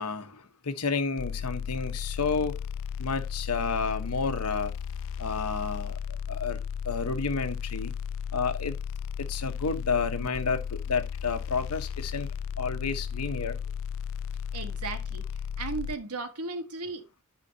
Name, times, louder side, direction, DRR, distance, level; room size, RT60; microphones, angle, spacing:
voice 1, 0.0-2.6 3.0-4.7 5.2-7.9 8.3-8.8 9.2-13.6, left 4 dB, 85° left, 1.1 m, -31 dB
sound 1, 1.2-15.9, left 7 dB, 60° left, 0.3 m, -35 dB
voice 2, 14.5-15.2 15.6-17.0, right 3 dB, 85° right, 1.5 m, -35 dB
12.5 x 4.9 x 2.7 m
head